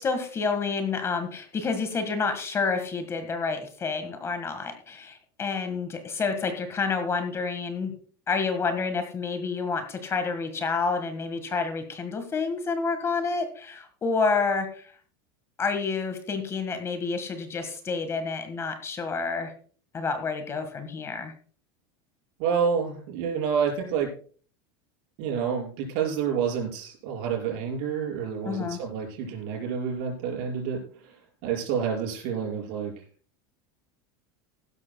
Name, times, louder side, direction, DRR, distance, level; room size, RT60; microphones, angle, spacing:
voice 1, 0.0-7.9 8.3-14.9 15.6-19.5 19.9-21.3 28.4-28.8, left 4 dB, 20° left, 8 dB, 1.6 m, -29 dB
voice 2, 22.4-24.1 25.2-31.1 31.4-32.9, right 7 dB, 60° right, 0 dB, 5.5 m, -28 dB
16.5 x 12.5 x 2.2 m, 0.44 s
supercardioid pair, 150°, 12 cm